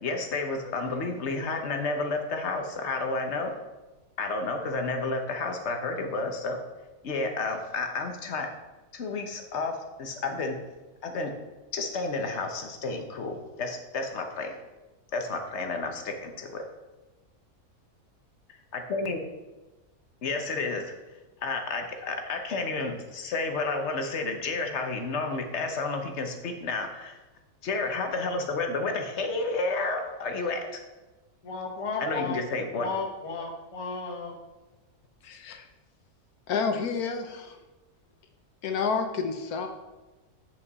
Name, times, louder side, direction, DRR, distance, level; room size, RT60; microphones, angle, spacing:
voice 1, 0.0-3.5 4.2-6.6 7.0-8.5 8.9-10.6 11.0-11.3 11.7-14.6 15.1-16.6 18.7-19.2 20.2-20.8 21.4-27.2 27.6-30.8 32.0-32.9, left 3 dB, 50° left, 4 dB, 1.1 m, -31 dB
voice 2, 31.4-32.4 32.8-34.3, left 4 dB, 25° left, 1 dB, 0.9 m, -33 dB
voice 3, 35.2-35.7 36.5-37.6 38.6-39.7, left 5 dB, 75° left, 5 dB, 1.2 m, -29 dB
8.4 x 5.5 x 4.1 m, 1.1 s
omnidirectional pair, 1.6 m